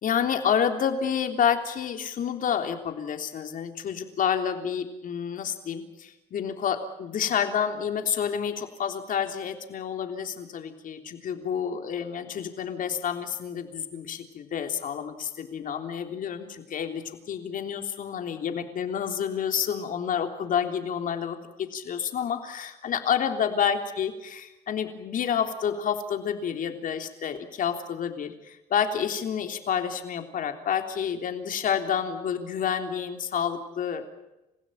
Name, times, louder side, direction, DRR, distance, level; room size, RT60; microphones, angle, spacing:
voice 1, 0.0-34.1, left 8 dB, 55° left, 6 dB, 3.5 m, -29 dB
29.0 x 16.0 x 8.8 m, 0.96 s
cardioid pair, 110°, 17 cm